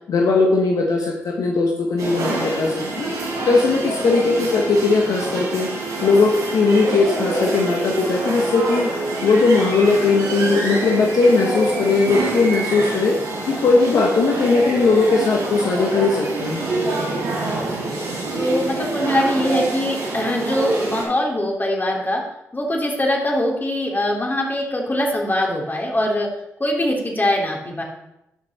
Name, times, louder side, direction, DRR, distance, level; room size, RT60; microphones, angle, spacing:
voice 1, 0.1-3.1 3.5-5.7 6.0-13.2 13.5-16.7, left 3 dB, 70° left, 0 dB, 1.2 m, -18 dB
sound 1, 2.0-21.0, right 2 dB, 85° right, 3.7 m, -26 dB
voice 2, 17.5-18.0 18.3-22.2 22.5-26.3 26.6-27.8, left 1 dB, 30° left, 0 dB, 3.2 m, -22 dB
12.5 x 5.7 x 4.2 m, 0.88 s
supercardioid pair, 40°, 6 cm